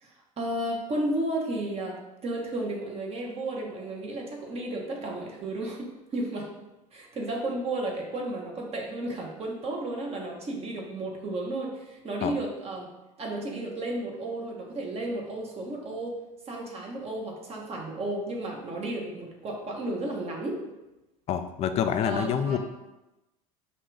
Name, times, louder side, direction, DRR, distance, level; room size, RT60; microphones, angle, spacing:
voice 1, 0.0-2.0 2.2-6.5 6.9-12.9 13.2-16.2 16.5-20.6 22.0-22.6, right 1 dB, 35° right, -1 dB, 1.1 m, -33 dB
voice 2, 21.3-22.6, left 8 dB, 35° left, 9 dB, 0.4 m, -27 dB
5.4 x 2.4 x 3.3 m, 0.99 s
hypercardioid pair, 90°, 18 cm